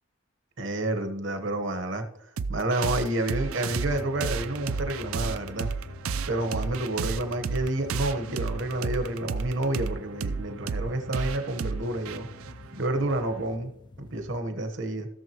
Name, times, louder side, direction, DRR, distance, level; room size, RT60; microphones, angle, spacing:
voice 1, 0.6-5.7 6.3-12.3 12.7-13.7 14.0-15.1, right 1 dB, 60° right, 8 dB, 1.2 m, -29 dB
sound 1, 2.4-13.5, right 5 dB, 85° right, 0.5 m, -33 dB
sound 2, 3.7-14.4, left 3 dB, 20° left, 0.3 m, -45 dB
16.5 x 6.9 x 3.0 m, 0.77 s
head